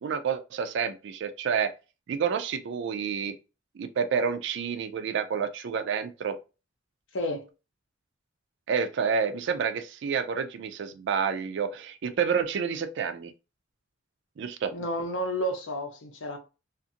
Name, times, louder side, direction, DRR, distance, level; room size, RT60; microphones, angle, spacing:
voice 1, 0.0-1.7 2.1-3.3 3.8-6.4 8.7-13.3 14.4-14.7, right 6 dB, 65° right, 0.4 m, -29 dB
voice 2, 7.1-7.5 14.7-16.4, equal, 75° left, 0.7 m, -31 dB
2.5 x 2.5 x 2.7 m
head